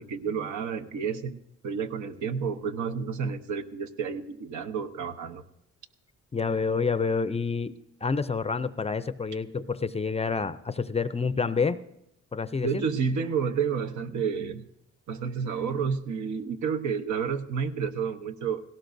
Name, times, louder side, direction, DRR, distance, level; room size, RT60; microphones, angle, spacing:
voice 1, 0.0-5.4 12.6-14.7 15.1-18.6, right 6 dB, 70° right, 6 dB, 1.0 m, -30 dB
voice 2, 6.3-7.7 8.0-11.8 12.3-12.8, left 5 dB, 20° left, 14 dB, 0.5 m, -28 dB
17.5 x 16.5 x 2.6 m, 0.84 s
cardioid pair, 90°, 30 cm